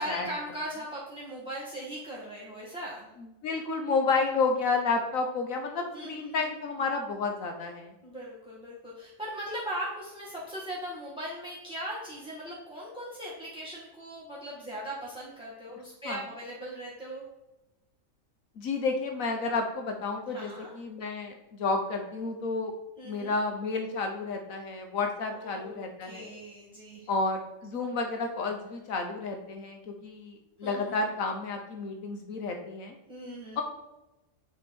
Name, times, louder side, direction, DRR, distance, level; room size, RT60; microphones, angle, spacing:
voice 1, 0.0-3.1 5.9-6.5 8.0-17.2 20.3-20.7 23.0-23.4 25.3-27.1 30.6-31.0 33.1-33.6, equal, 5° right, -6 dB, 2.0 m, -39 dB
voice 2, 3.4-7.9 16.0-16.2 18.6-22.7 23.0-26.4 27.1-33.0 33.6-33.7, left 3 dB, 80° left, 4 dB, 1.4 m, -31 dB
8.4 x 4.9 x 6.1 m, 1.0 s
omnidirectional pair, 1.4 m